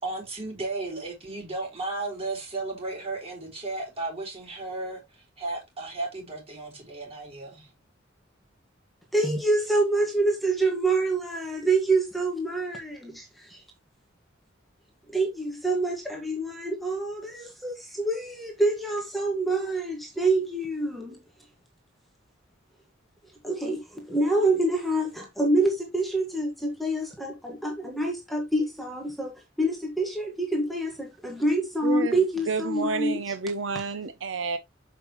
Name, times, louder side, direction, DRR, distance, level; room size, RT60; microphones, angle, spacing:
voice 1, 0.0-7.7, right 2 dB, 30° right, 4.2 m, -34 dB
voice 2, 9.1-13.6 15.1-21.2 23.4-33.2, right 2 dB, ahead, 1.7 m, -26 dB
voice 3, 31.8-32.2 32.5-34.6, right 4 dB, 70° right, 0.7 m, -30 dB
7.2 x 5.8 x 3.0 m
head